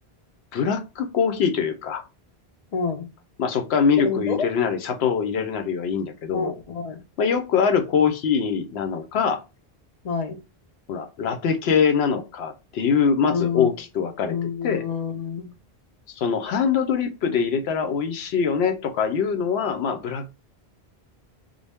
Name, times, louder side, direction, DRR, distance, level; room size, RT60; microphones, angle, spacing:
voice 1, 0.5-2.0 3.4-6.5 7.2-9.4 10.9-14.8 16.2-20.3, left 6 dB, 85° left, 8 dB, 0.8 m, -23 dB
voice 2, 2.7-3.1 4.0-4.5 6.3-7.0 10.0-10.4 13.3-13.7 14.2-15.5, left 5 dB, 45° left, 8 dB, 0.5 m, -28 dB
3.7 x 2.0 x 3.4 m, 0.27 s
omnidirectional pair, 1.1 m